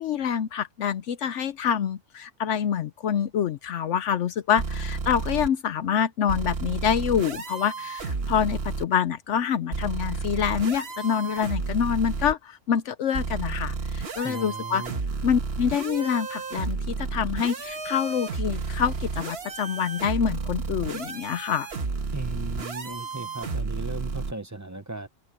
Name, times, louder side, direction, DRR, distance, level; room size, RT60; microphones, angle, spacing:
voice 1, 0.0-14.8 15.2-21.7, left 8 dB, 70° left, 1.0 m, -26 dB
sound 1, 4.6-5.5 6.3-8.9 9.7-12.3 13.1-24.3, right 4 dB, 55° right, 1.6 m, -32 dB
voice 2, 14.2-15.0 22.1-25.1, right 3 dB, 20° right, 0.6 m, -36 dB
open air
omnidirectional pair, 1.3 m